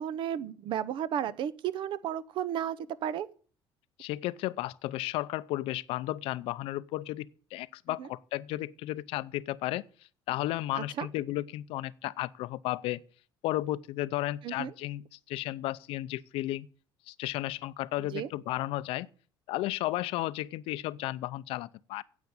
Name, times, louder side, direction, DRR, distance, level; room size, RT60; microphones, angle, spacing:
voice 1, 0.0-3.3 8.0-8.1 10.7-11.1 14.4-14.7 18.1-18.3, right 10 dB, 60° right, 0.8 m, -33 dB
voice 2, 4.0-9.8 10.3-13.0 13.4-16.7 17.1-19.1 19.5-22.0, left 16 dB, 80° left, 0.6 m, -33 dB
9.6 x 8.1 x 7.2 m
cardioid pair, 115°, 9 cm